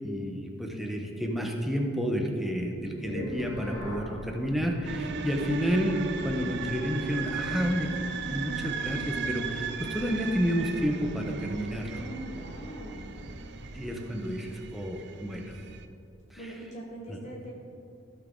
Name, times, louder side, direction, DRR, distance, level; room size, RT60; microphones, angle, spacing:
voice 1, 0.0-6.0 6.2-7.9 8.2-11.9 13.7-15.4 16.3-16.4 17.1-17.2, equal, ahead, 1 dB, 0.9 m, -30 dB
sound 1, 2.7-13.8, equal, 80° left, 2.5 m, -44 dB
sound 2, 4.8-15.9, right 6 dB, 55° right, 0.5 m, -37 dB
voice 2, 11.8-13.1 16.4-17.5, right 1 dB, 35° left, -3 dB, 1.3 m, -42 dB
15.5 x 6.1 x 3.8 m, 2.6 s
head